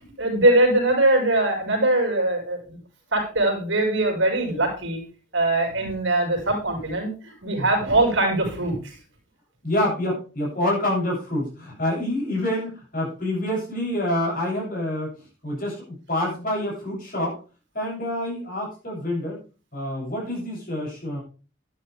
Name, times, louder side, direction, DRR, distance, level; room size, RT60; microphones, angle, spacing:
voice 1, 0.2-2.8 3.1-5.0 5.3-9.0, right 2 dB, 75° right, 1 dB, 5.2 m, -22 dB
voice 2, 9.6-17.4 17.7-19.4 19.7-21.2, left 1 dB, 45° left, -2 dB, 7.8 m, -27 dB
12.0 x 11.0 x 3.5 m, 0.34 s
head